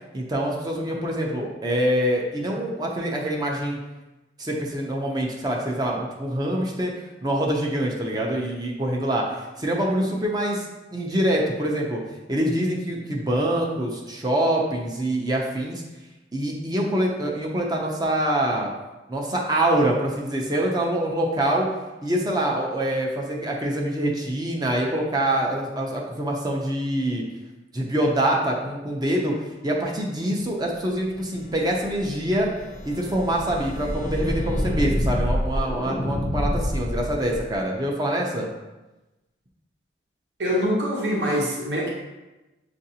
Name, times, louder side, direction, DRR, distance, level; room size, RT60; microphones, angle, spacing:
voice 1, 0.1-3.8 4.4-6.9 7.2-12.0 12.3-15.8 16.3-18.7 19.1-21.7 22.0-27.2 27.7-29.4 29.6-32.5 32.9-38.5, right 1 dB, 20° right, -1 dB, 0.5 m, -25 dB
sound 1, 31.2-37.5, left 1 dB, 45° left, 0.4 m, -28 dB
voice 2, 40.4-41.9, equal, 70° right, -3 dB, 0.9 m, -24 dB
6.4 x 2.5 x 2.8 m, 1.1 s
head